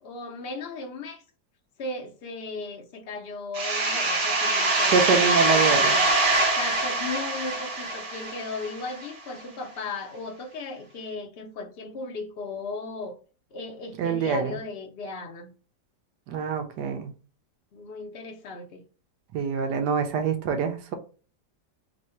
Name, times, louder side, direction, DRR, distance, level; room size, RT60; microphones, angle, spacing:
voice 1, 0.0-1.2 1.8-13.2 13.5-15.5 17.7-18.8, left 3 dB, 80° left, 0.5 m, -36 dB
sound 1, 3.5-9.1, right 2 dB, 45° right, 0.7 m, -24 dB
voice 2, 4.9-6.0 14.0-14.6 16.3-17.1 19.3-20.9, right 5 dB, 75° right, 1.2 m, -25 dB
3.2 x 2.7 x 4.3 m
omnidirectional pair, 1.9 m